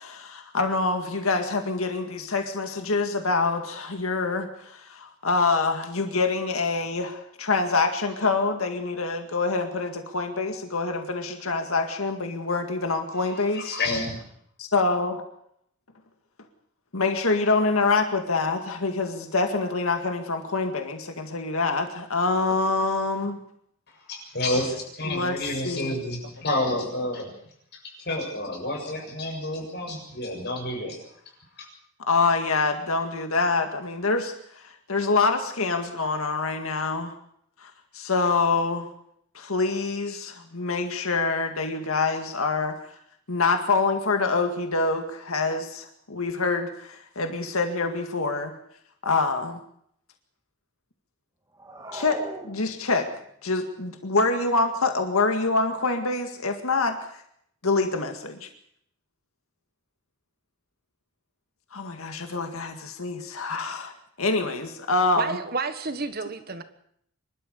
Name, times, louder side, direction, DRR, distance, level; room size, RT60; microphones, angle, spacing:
voice 1, 0.0-13.8 14.6-15.2 16.9-23.4 25.0-25.9 32.1-37.1 37.6-38.9 39.3-42.8 43.3-48.5 49.0-49.6 51.9-53.1 53.4-57.0 57.6-58.5 61.7-65.4, left 3 dB, 90° left, 6 dB, 2.0 m, -26 dB
voice 2, 13.5-14.2 24.1-27.3 27.7-31.0 31.6-31.7, left 1 dB, 50° left, 1 dB, 7.2 m, -29 dB
sound 1, 51.5-53.2, right 1 dB, 15° right, 2.1 m, -39 dB
voice 3, 65.1-66.6, right 4 dB, 45° right, 10 dB, 1.4 m, -30 dB
25.5 x 12.5 x 8.2 m, 0.70 s
head